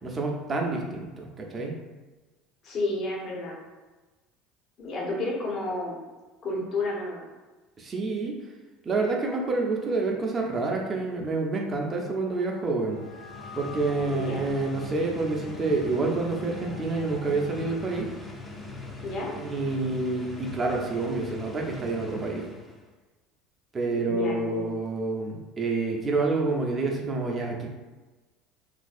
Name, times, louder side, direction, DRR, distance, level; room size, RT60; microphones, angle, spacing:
voice 1, 0.0-1.7 7.8-8.4 8.8-13.0 13.5-18.1 19.3-22.4 23.7-27.7, right 3 dB, 30° right, 0 dB, 0.6 m, -28 dB
voice 2, 2.6-3.6 4.8-6.0 6.4-7.3 14.0-14.5 19.0-19.3 23.9-24.7, left 2 dB, 45° left, -2 dB, 0.8 m, -31 dB
sound 1, 11.6-18.1, left 6 dB, 85° left, 0.4 m, -45 dB
sound 2, 12.9-22.9, left 3 dB, 15° left, 0.6 m, -42 dB
3.1 x 2.6 x 2.4 m, 1.2 s
figure-of-eight pair, 65°, 0 cm